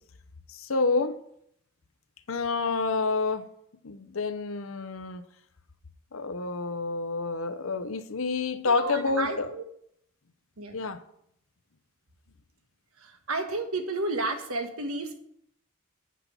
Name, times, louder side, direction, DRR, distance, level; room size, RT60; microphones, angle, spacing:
voice 1, 0.5-1.2 2.3-3.5 3.8-5.2 6.1-9.6 10.7-11.0, left 4 dB, 70° left, 10 dB, 0.8 m, -28 dB
voice 2, 8.6-9.6 10.6-10.8 13.3-15.2, right 2 dB, 80° right, 6 dB, 1.4 m, -31 dB
8.4 x 5.6 x 7.0 m, 0.72 s
head